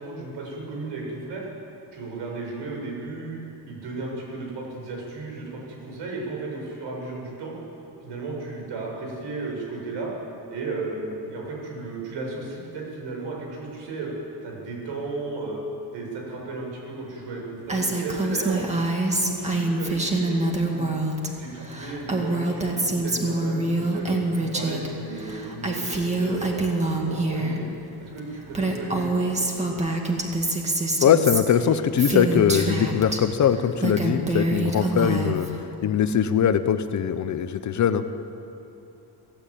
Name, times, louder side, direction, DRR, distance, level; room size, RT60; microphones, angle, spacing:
voice 1, 0.0-1.5 1.9-3.4 3.7-7.5 8.0-10.1 10.5-14.1 14.4-15.6 15.9-18.7 19.1-20.9 21.4-27.7 28.0-29.7, right 3 dB, 85° right, -1 dB, 7.8 m, -34 dB
Female speech woman speaking, 17.7-21.3 21.6-24.9 25.2-27.6 28.2-28.3 28.5-33.2 33.6-35.5, right 2 dB, 15° right, 2.1 m, -25 dB
voice 2, 31.0-38.1, left 8 dB, 45° left, 10 dB, 0.9 m, -21 dB
27.0 x 15.5 x 8.7 m, 2.9 s
cardioid pair, 180°, 42 cm